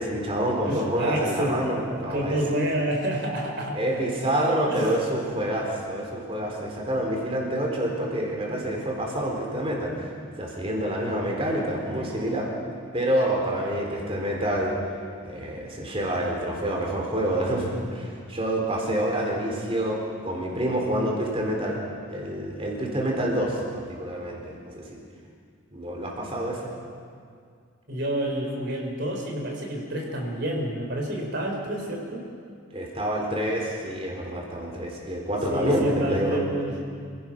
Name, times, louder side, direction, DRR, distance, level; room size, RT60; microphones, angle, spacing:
voice 1, 0.0-2.4 3.7-12.5 12.9-14.8 15.2-21.8 22.1-25.0 25.7-26.7 32.7-36.4, right 1 dB, 25° right, -1 dB, 3.9 m, -27 dB
voice 2, 0.7-1.7 2.1-3.8 4.7-4.9 27.9-32.3 35.5-36.9, right 1 dB, 50° right, 0 dB, 3.7 m, -28 dB
27.5 x 16.5 x 6.0 m, 2.2 s
head